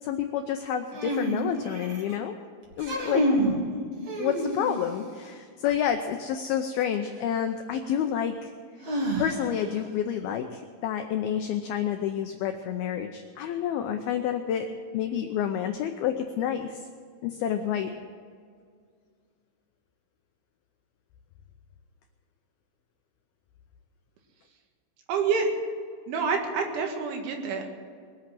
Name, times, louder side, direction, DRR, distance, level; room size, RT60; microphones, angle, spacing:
voice 1, 0.0-2.4 2.8-3.3 4.2-8.5 9.2-16.8 17.2-17.9, left 9 dB, 85° left, 6 dB, 2.1 m, -29 dB
sound 1, 0.9-2.1 2.7-3.6 4.1-5.0 6.9-7.0 8.8-9.7, equal, 40° right, 3.3 m, -28 dB
voice 2, 25.1-25.5 26.1-27.6, right 5 dB, 85° right, 3 dB, 4.3 m, -27 dB
21.5 x 8.7 x 7.5 m, 2.1 s
omnidirectional pair, 5.3 m